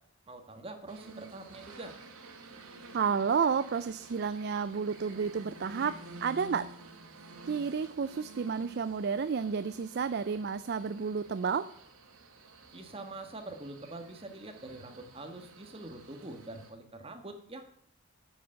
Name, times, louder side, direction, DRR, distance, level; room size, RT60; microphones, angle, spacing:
voice 1, 0.3-1.9 12.7-17.6, right 2 dB, 25° right, 6 dB, 1.4 m, -44 dB
sound 1, 0.9-16.7, right 3 dB, 90° right, 2.0 m, -51 dB
voice 2, 2.9-6.7 7.4-11.7, right 6 dB, 50° right, 13 dB, 0.4 m, -31 dB
9.6 x 6.8 x 6.4 m, 0.69 s
head